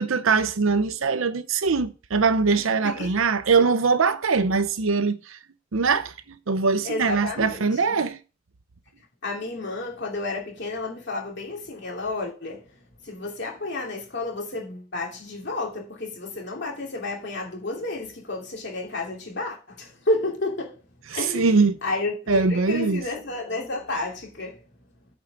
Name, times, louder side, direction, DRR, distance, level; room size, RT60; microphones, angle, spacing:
voice 1, 0.0-5.4 5.7-6.1 6.5-8.2 21.3-21.8 22.3-23.0, right 4 dB, 75° right, 0.7 m, -22 dB
voice 2, 6.8-8.0 9.2-12.7 13.0-20.8 21.1-24.6, left 2 dB, 55° left, 2.8 m, -31 dB
8.9 x 4.7 x 5.9 m
head